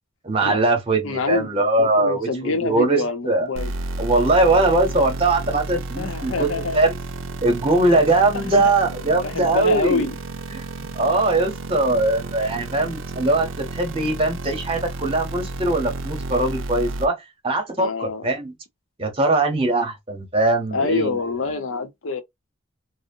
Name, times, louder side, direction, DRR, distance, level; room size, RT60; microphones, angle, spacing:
voice 1, 0.2-3.5 4.0-6.9 7.4-10.0 10.5-18.5 19.0-21.2, right 2 dB, 30° right, 0.8 m, -21 dB
voice 2, 1.0-3.7 6.0-6.8 8.3-8.7 9.1-10.1 17.8-18.3 20.7-22.2, left 4 dB, 85° left, 0.6 m, -26 dB
sound 1, 3.5-17.1, right 2 dB, 80° right, 0.4 m, -32 dB
2.6 x 2.0 x 2.6 m
head